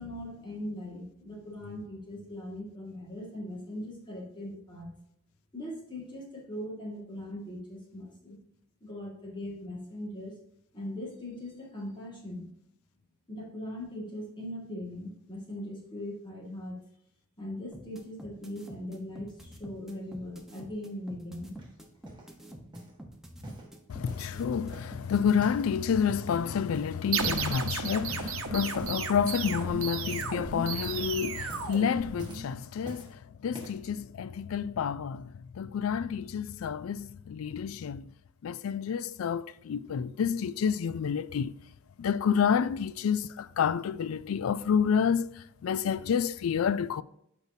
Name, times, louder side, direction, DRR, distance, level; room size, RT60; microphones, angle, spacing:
voice 1, 0.0-4.9 5.5-8.4 8.8-10.3 10.7-12.5 13.3-16.8 17.4-21.6, left 1 dB, 25° left, 1.8 m, -40 dB
sound 1, 17.7-25.3, right 1 dB, ahead, 0.9 m, -47 dB
sound 2, 21.6-22.3 22.7-23.0 23.4-24.4 24.7-25.7 26.0-26.4 26.7-27.0 27.4-27.8 28.1-28.4 28.7-29.0 29.4-30.5 30.7-31.1 31.4-31.8 32.2-33.1 33.5-33.9 34.5-34.6, right 1 dB, 20° right, 1.4 m, -47 dB
voice 2, 23.9-38.1 38.4-41.5 42.0-47.0, left 7 dB, 90° left, 0.4 m, -29 dB
sound 3, 27.1-32.6, right 6 dB, 85° right, 0.8 m, -34 dB
8.1 x 5.2 x 2.7 m
head